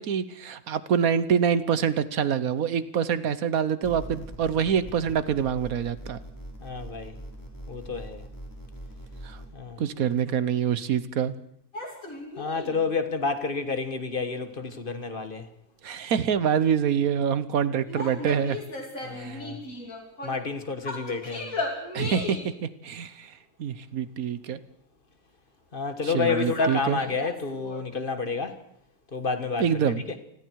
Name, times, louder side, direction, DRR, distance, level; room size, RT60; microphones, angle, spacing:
voice 1, 0.0-6.2 9.2-9.4 9.8-11.3 15.8-18.6 19.2-19.4 21.9-23.3 23.6-24.6 26.0-27.0 29.6-30.0, right 8 dB, 70° right, 1.4 m, -26 dB
sound 1, 3.8-9.5, right 1 dB, 10° left, 4.2 m, -42 dB
voice 2, 6.6-7.2 7.7-8.2 9.5-9.8 12.4-15.5 19.0-19.6 20.2-21.5 25.7-28.5 29.1-29.7, left 4 dB, 35° left, 1.6 m, -29 dB
sound 2, 11.7-12.8 17.8-20.5 20.8-22.6 26.1-27.8, left 2 dB, 65° left, 4.0 m, -36 dB
28.5 x 20.5 x 4.7 m
omnidirectional pair, 1.6 m